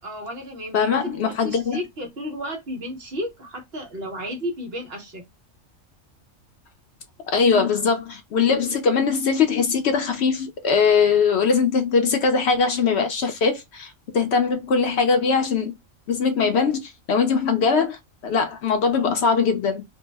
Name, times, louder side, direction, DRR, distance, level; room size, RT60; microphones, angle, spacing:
voice 1, 0.0-5.2, equal, 55° right, 1.0 m, -33 dB
voice 2, 0.7-1.8 7.3-15.7 16.1-19.8, left 5 dB, 65° left, 0.8 m, -21 dB
2.6 x 2.0 x 3.3 m
omnidirectional pair, 1.3 m